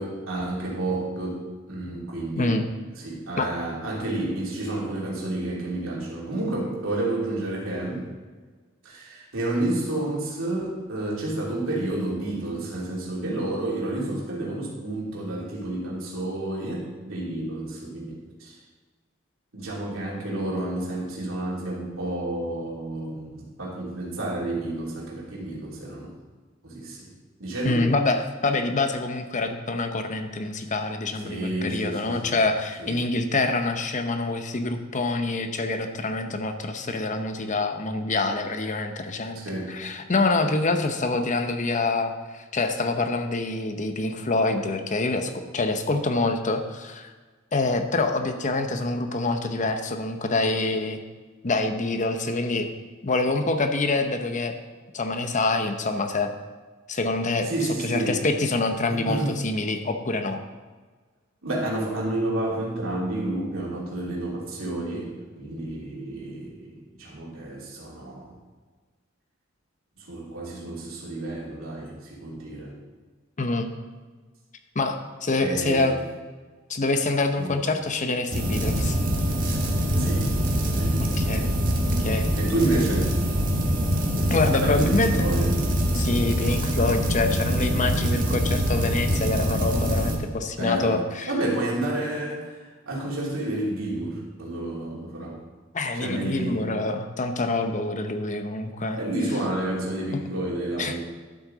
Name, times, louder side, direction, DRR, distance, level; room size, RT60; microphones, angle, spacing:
voice 1, 0.0-2.6 3.0-8.1 8.8-18.5 19.5-26.1 26.6-27.1 27.4-27.8 31.2-32.4 32.8-32.9 39.3-39.8 57.5-58.2 58.9-59.4 61.4-68.3 70.0-72.7 75.4-76.0 77.4-77.5 79.9-80.3 80.7-81.3 82.4-83.1 83.6-83.7 84.5-85.7 90.6-91.0 91.3-92.6 92.9-95.4 95.9-96.6 98.9-101.0, right 2 dB, 75° right, -4 dB, 2.9 m, -30 dB
voice 2, 2.4-2.7 3.4-3.5 27.6-47.1 47.5-51.0 51.4-52.7 53.0-54.6 54.9-56.3 56.9-57.5 57.8-60.4 73.4-73.7 74.7-75.9 76.7-79.0 81.0-81.5 82.0-82.3 84.3-85.1 85.9-91.3 95.7-99.0 100.1-100.2 100.8-101.0, left 3 dB, 40° left, 7 dB, 0.8 m, -26 dB
sound 1, 78.3-90.2, equal, 45° right, 1.6 m, -24 dB
12.0 x 7.9 x 3.9 m, 1.4 s
head